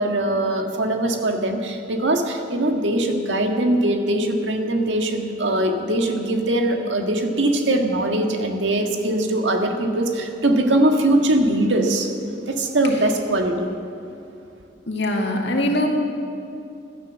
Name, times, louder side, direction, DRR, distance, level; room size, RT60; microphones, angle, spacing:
voice 1, 0.0-12.1 12.5-13.7, right 1 dB, 85° right, 3 dB, 1.7 m, -21 dB
voice 2, 14.9-15.9, left 1 dB, 70° left, 1 dB, 2.3 m, -22 dB
16.0 x 12.0 x 7.3 m, 2.6 s
head